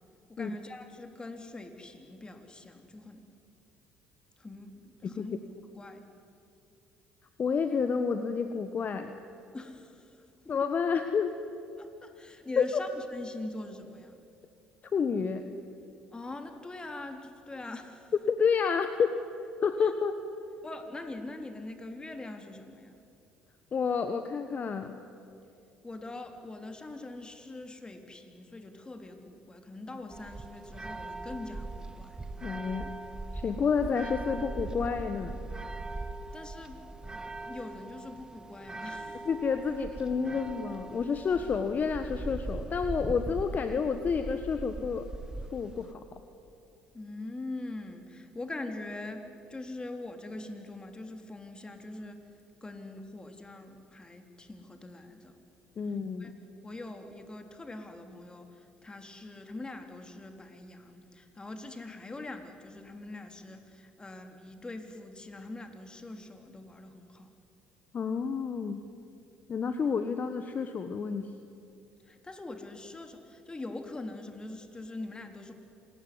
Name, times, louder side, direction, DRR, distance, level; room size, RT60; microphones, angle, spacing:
voice 1, 0.3-3.3 4.4-6.1 9.5-10.5 11.8-14.2 16.1-18.1 19.8-19.9 20.6-23.0 25.8-32.2 36.3-36.8 37.4-39.3 46.9-52.3 52.6-55.4 56.2-56.3 56.6-67.3 72.0-75.5, left 2 dB, 20° left, 6 dB, 3.5 m, -43 dB
voice 2, 7.4-9.1 10.5-11.3 12.6-12.8 14.9-15.5 18.3-19.2 19.6-20.2 23.7-25.0 32.4-32.9 33.3-35.4 39.2-45.1 45.5-46.0 55.8-56.3 67.9-68.8 69.5-71.3, left 6 dB, 45° left, 9 dB, 1.4 m, -29 dB
sound 1, 30.1-45.9, right 2 dB, 20° right, 1.7 m, -40 dB
27.0 x 20.0 x 9.8 m, 2.6 s
hypercardioid pair, 60°, 4 cm